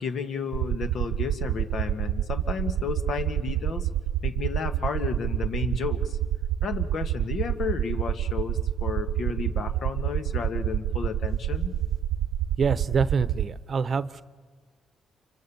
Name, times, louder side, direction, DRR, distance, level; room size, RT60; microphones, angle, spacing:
voice 1, 0.0-3.9 4.2-6.2 6.6-11.7, left 5 dB, 60° left, 8 dB, 1.9 m, -32 dB
sound 1, 0.5-13.4, right 12 dB, 85° right, 1.0 m, -27 dB
voice 2, 12.6-14.2, right 5 dB, 45° right, 15 dB, 0.9 m, -26 dB
28.5 x 25.0 x 7.1 m, 1.5 s
cardioid pair, 90°, 0 cm